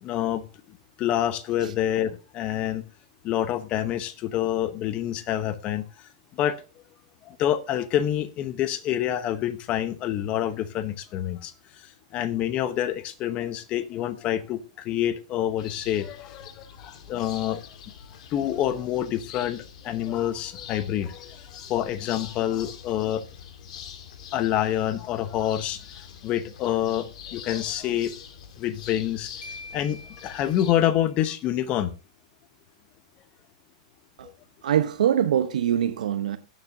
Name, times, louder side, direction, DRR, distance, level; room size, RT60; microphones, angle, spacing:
voice 1, 0.0-2.8 3.2-6.6 7.2-17.6 18.3-23.2 24.3-28.1 28.6-29.3 29.7-31.9 34.2-34.3, left 11 dB, 30° left, 0.9 m, -27 dB
sound 1, 15.6-30.7, left 8 dB, 60° left, 1.8 m, -44 dB
Marimba xylophone, 29.4-31.2, left 2 dB, 90° left, 2.6 m, -45 dB
voice 2, 34.6-36.4, right 10 dB, 80° right, 0.9 m, -23 dB
17.5 x 7.3 x 2.7 m
hypercardioid pair, 145°, 4 cm